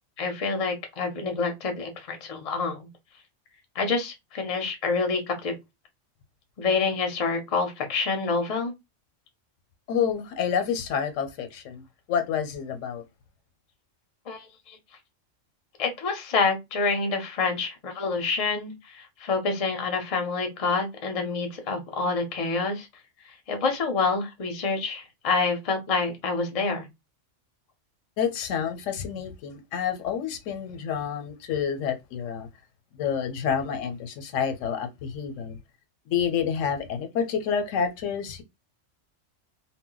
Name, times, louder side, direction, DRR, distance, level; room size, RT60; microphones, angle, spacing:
voice 1, 0.2-2.8 3.7-5.5 6.6-8.7 14.3-14.8 15.8-22.9 23.5-26.9, left 4 dB, 40° left, 0.5 m, -27 dB
voice 2, 9.9-13.0 28.2-32.5 32.9-35.6 36.1-38.4, left 7 dB, 85° left, 1.0 m, -28 dB
2.1 x 2.1 x 3.7 m
omnidirectional pair, 1.3 m